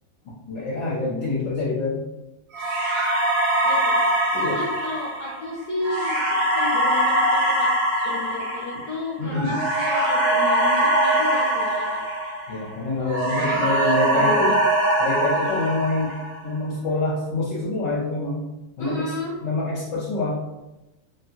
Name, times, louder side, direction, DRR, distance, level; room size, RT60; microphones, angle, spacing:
voice 1, 0.5-2.0 4.3-4.6 9.2-9.6 12.5-14.6 15.0-16.2 16.4-18.5 18.8-19.1 19.4-20.3, left 3 dB, 65° left, -7 dB, 1.0 m, -26 dB
sound 1, 2.5-12.7 13.1-16.5, right 1 dB, 80° right, 1.2 m, -22 dB
voice 2, 3.6-4.1 4.5-7.7 8.0-12.0 13.4-14.6 18.8-19.4, left 2 dB, 15° left, -6 dB, 0.8 m, -33 dB
2.7 x 2.7 x 2.4 m, 0.98 s
omnidirectional pair, 1.4 m